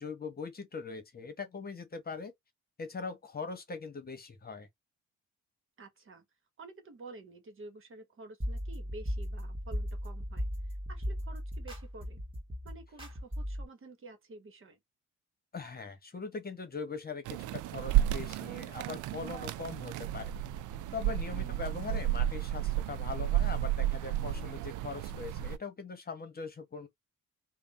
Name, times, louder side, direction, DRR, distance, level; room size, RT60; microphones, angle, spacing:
voice 1, 0.0-2.3 2.8-4.7 15.5-20.3 20.9-26.9, left 4 dB, 30° left, 1.1 m, -41 dB
voice 2, 5.8-6.2 6.6-12.2 12.6-14.8 21.3-21.6, right 2 dB, 45° right, 1.2 m, -50 dB
sound 1, 8.4-13.7, equal, 15° right, 1.9 m, -37 dB
sound 2, 17.2-25.6, right 13 dB, 80° right, 0.4 m, -32 dB
3.4 x 2.3 x 4.1 m
cardioid pair, 90°, 30 cm